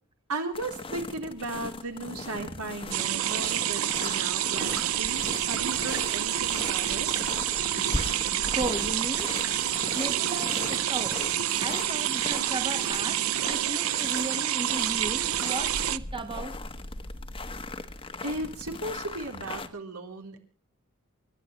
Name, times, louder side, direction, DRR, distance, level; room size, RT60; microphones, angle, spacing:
voice 1, 0.3-7.1 18.2-20.4, right 2 dB, 90° right, 4 dB, 3.6 m, -36 dB
sound 1, 0.5-19.7, left 2 dB, 25° left, 1.2 m, -38 dB
sound 2, 2.9-16.0, right 12 dB, 70° right, 0.6 m, -28 dB
voice 2, 8.5-9.3 9.9-11.2 11.6-16.6, right 2 dB, 25° right, 7 dB, 1.4 m, -35 dB
28.5 x 12.0 x 3.1 m, 0.39 s
head